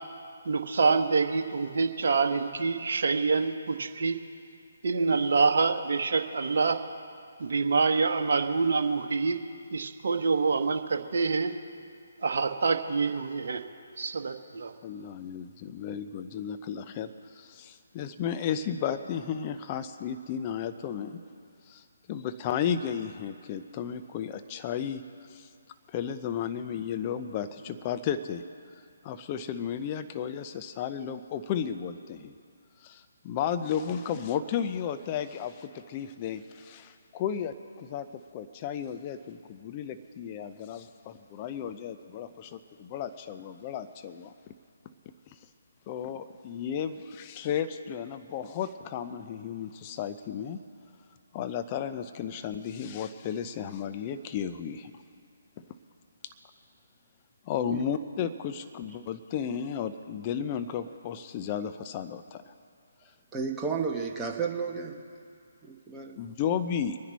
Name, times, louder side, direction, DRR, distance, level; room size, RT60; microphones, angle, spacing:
voice 1, 0.4-4.2 4.8-6.8 7.4-9.4 9.7-11.5 12.2-13.6 14.0-14.7, right 4 dB, 55° right, 4 dB, 1.2 m, -26 dB
voice 2, 14.8-21.2 21.7-25.0 25.3-25.5 25.9-28.4 29.0-32.4 32.8-44.3 45.9-50.6 51.3-54.9 55.6-55.7 56.2-56.3 57.5-62.4 66.2-67.0, left 8 dB, 30° left, 10 dB, 0.6 m, -34 dB
voice 3, 63.3-65.0 65.6-66.2, right 5 dB, 10° right, 0 dB, 1.3 m, -32 dB
24.5 x 10.0 x 4.1 m, 2.3 s
figure-of-eight pair, 140°, 0 cm